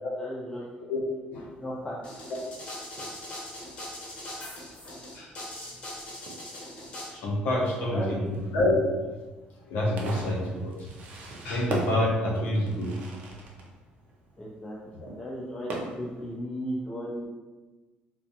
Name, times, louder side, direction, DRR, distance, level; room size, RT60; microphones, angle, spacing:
voice 1, 0.2-0.6 1.6-2.0 7.9-8.1 14.4-14.8 15.2-17.3, equal, 15° left, -6 dB, 0.4 m, -35 dB
Fireworks, 1.3-16.4, right 2 dB, 60° right, 0.5 m, -42 dB
sound 1, 2.0-7.1, left 1 dB, 40° left, 0.8 m, -40 dB
voice 2, 7.1-8.8 9.7-10.9 11.4-12.9 15.0-15.1, left 1 dB, 75° left, -4 dB, 0.7 m, -27 dB
2.4 x 2.2 x 2.7 m, 1.2 s
cardioid pair, 130°, 3 cm